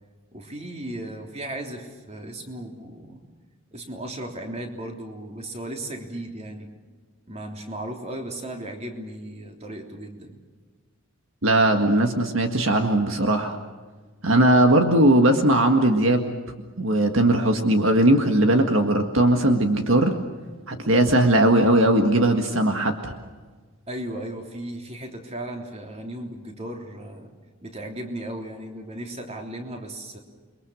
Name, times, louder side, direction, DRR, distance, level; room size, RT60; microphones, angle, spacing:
voice 1, 0.3-3.2 3.7-6.7 7.3-10.3 23.9-27.3 27.6-30.2, right 1 dB, 30° right, 3 dB, 3.4 m, -36 dB
voice 2, 11.4-13.6 14.2-16.4 16.8-20.2 20.7-23.1, right 1 dB, 65° right, 5 dB, 1.8 m, -19 dB
29.0 x 23.0 x 6.4 m, 1.4 s
head